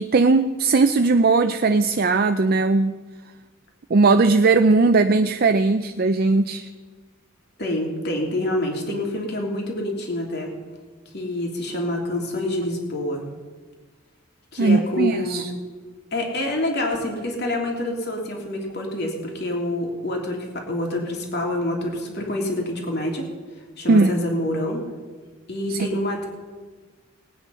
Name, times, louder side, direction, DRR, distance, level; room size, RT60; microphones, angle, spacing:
voice 1, 0.0-2.9 3.9-6.7 14.6-15.5 23.9-24.2 25.7-25.9, right 3 dB, 45° right, 8 dB, 0.5 m, -18 dB
voice 2, 7.6-10.5 11.1-13.2 14.5-15.4 16.1-23.3 23.8-24.8 25.5-26.3, left 1 dB, 50° left, 0 dB, 3.0 m, -27 dB
20.0 x 9.2 x 5.6 m, 1.4 s
head